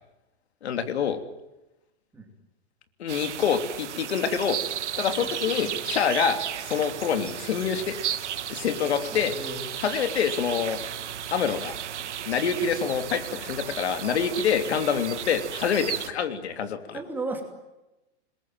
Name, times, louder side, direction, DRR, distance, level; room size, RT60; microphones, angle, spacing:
voice 1, 0.6-1.2 3.0-4.6 5.0-8.0 8.5-9.3 9.8-10.8 11.3-11.7 12.3-17.0, left 7 dB, 65° left, 8 dB, 3.2 m, -26 dB
sound 1, 3.1-16.1, right 10 dB, 85° right, 1.8 m, -34 dB
voice 2, 9.1-9.7 16.9-17.4, right 2 dB, 5° right, 3 dB, 2.7 m, -34 dB
28.0 x 21.5 x 9.2 m, 0.98 s
hypercardioid pair, 175°, 34 cm